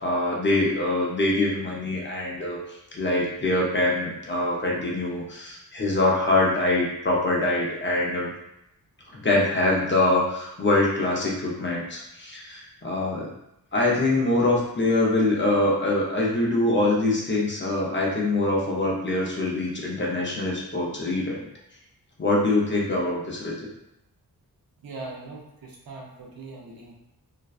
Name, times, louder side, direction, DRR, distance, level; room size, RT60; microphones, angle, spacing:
voice 1, 0.0-2.6 2.9-8.3 9.1-13.3 13.7-21.4 22.2-23.5, left 2 dB, 30° left, -3 dB, 0.6 m, -24 dB
voice 2, 24.8-26.9, right 3 dB, 70° right, -2 dB, 0.7 m, -40 dB
2.5 x 2.2 x 2.4 m, 0.83 s
wide cardioid pair, 95°, 37 cm